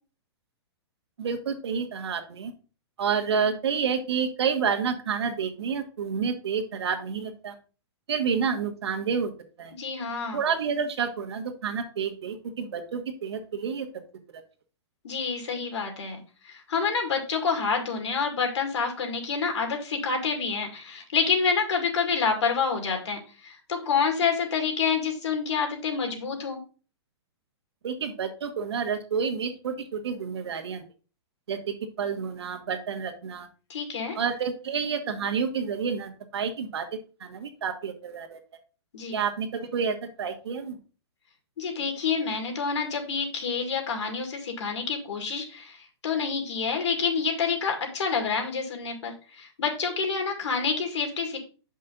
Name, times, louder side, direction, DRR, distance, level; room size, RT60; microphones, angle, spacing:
voice 1, 1.2-2.5 3.0-7.5 8.1-9.3 9.6-9.7 10.3-13.9 14.3-14.4 27.8-30.8 31.5-33.5 34.1-36.8 37.2-38.4 39.1-40.8, right 6 dB, 70° right, 4 dB, 1.4 m, -29 dB
voice 2, 9.8-10.4 15.0-16.2 16.7-23.2 23.7-26.6 33.7-34.2 38.9-39.1 41.6-45.7 46.0-49.1 49.4-51.4, left 5 dB, 90° left, 4 dB, 2.3 m, -27 dB
6.8 x 5.4 x 3.9 m, 0.36 s
hypercardioid pair, 180°, 14 cm